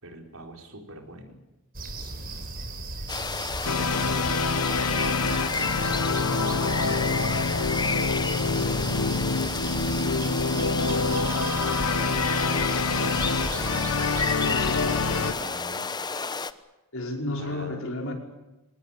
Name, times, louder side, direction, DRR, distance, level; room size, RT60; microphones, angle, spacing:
voice 1, 0.0-1.4 3.0-12.6 12.9-15.9 17.4-17.8, right 1 dB, 70° right, 4 dB, 4.6 m, -44 dB
sound 1, 1.7-15.3, right 2 dB, 45° right, 4.2 m, -36 dB
sound 2, 3.1-16.5, left 4 dB, 20° left, 1.0 m, -31 dB
sound 3, 3.6-15.3, left 4 dB, 90° left, 1.1 m, -27 dB
voice 2, 14.4-15.3 16.9-18.1, left 2 dB, 65° left, 2 dB, 5.3 m, -33 dB
25.5 x 19.0 x 8.9 m, 1.0 s
head